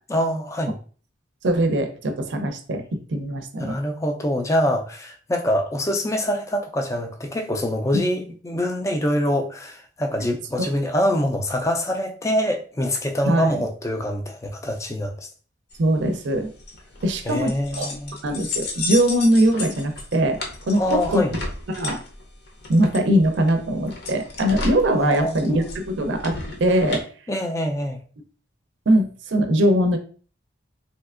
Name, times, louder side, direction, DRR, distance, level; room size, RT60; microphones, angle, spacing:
voice 1, 0.1-0.8 3.6-15.3 17.3-18.2 20.7-21.3 25.0-25.6 27.3-28.0, equal, 15° left, 0.3 m, -25 dB
voice 2, 1.4-3.8 10.6-10.7 13.3-13.6 15.8-16.5 17.0-20.4 20.7-21.2 21.8-22.0 22.7-27.0 28.9-30.0, right 1 dB, 70° right, 0.5 m, -21 dB
sound 1, 15.7-27.0, left 3 dB, 55° left, 0.7 m, -34 dB
3.3 x 2.7 x 2.4 m
head